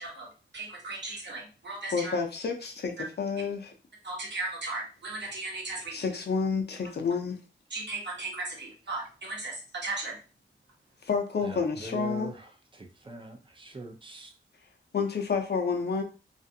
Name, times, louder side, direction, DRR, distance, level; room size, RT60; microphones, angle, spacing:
voice 1, 0.0-2.1 4.0-6.0 7.7-10.2, right 2 dB, 60° right, -1 dB, 1.0 m, -36 dB
voice 2, 1.9-3.7 5.9-7.4 11.0-12.3 14.9-16.0, left 5 dB, 55° left, 5 dB, 0.5 m, -29 dB
voice 3, 11.4-14.3, right 3 dB, 25° right, 3 dB, 0.5 m, -42 dB
2.5 x 2.4 x 2.6 m, 0.35 s
wide cardioid pair, 105°, 20 cm